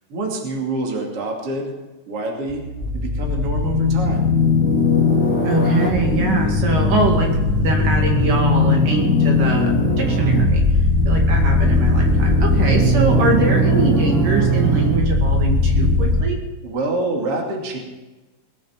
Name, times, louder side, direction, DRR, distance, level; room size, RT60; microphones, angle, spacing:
voice 1, 0.1-1.7 2.1-2.6 2.9-4.3 10.6-11.1 16.6-17.8, right 2 dB, 45° right, 0 dB, 3.2 m, -27 dB
sound 1, 2.5-16.2, left 2 dB, 20° left, 3.3 m, -18 dB
voice 2, 5.4-7.3 7.6-10.6 11.1-16.4, right 3 dB, 70° right, 1 dB, 3.8 m, -22 dB
20.5 x 9.3 x 5.9 m, 1.1 s
omnidirectional pair, 4.0 m